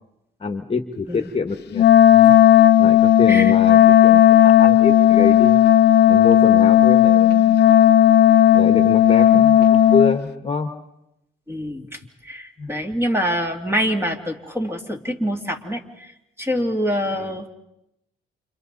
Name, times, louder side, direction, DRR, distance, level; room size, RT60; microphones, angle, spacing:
voice 1, 0.4-2.4 2.8-5.6 6.0-7.7 8.5-10.7 12.6-12.7 17.1-17.3, left 4 dB, 30° left, 7 dB, 1.5 m, -26 dB
Wind instrument woodwind instrument, 1.7-10.2, left 11 dB, 55° left, 0.8 m, -13 dB
voice 2, 11.5-12.0 12.2-16.1 16.4-17.5, equal, 10° right, 3 dB, 2.7 m, -25 dB
29.5 x 27.5 x 4.1 m, 0.85 s
cardioid pair, 90°, 20 cm